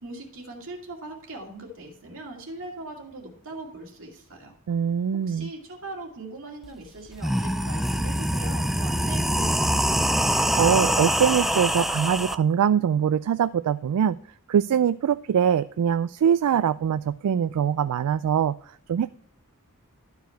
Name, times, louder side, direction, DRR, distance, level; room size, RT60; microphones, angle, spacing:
voice 1, 0.0-4.6 5.3-10.1, right 2 dB, 65° right, 1 dB, 2.4 m, -40 dB
voice 2, 4.7-5.5 10.6-14.2 14.5-18.6 18.9-19.1, right 8 dB, 85° right, 14 dB, 0.3 m, -23 dB
sound 1, 6.6-6.7 7.1-12.3, equal, ahead, 0.3 m, -24 dB
12.0 x 4.8 x 4.5 m, 0.62 s
head